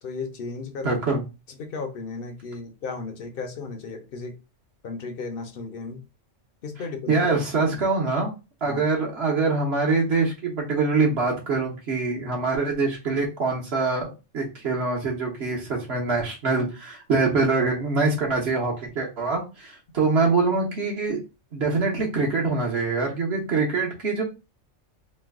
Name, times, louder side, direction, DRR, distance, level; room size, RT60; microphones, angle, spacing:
voice 1, 0.0-1.0 1.6-4.4 4.8-6.0 6.6-7.2 8.6-8.8, left 4 dB, 55° left, 0.7 m, -35 dB
voice 2, 0.8-1.2 7.1-8.3 8.6-14.1 14.3-21.2 21.5-24.2, right 3 dB, 60° right, 1.1 m, -24 dB
3.1 x 2.1 x 3.4 m
omnidirectional pair, 1.3 m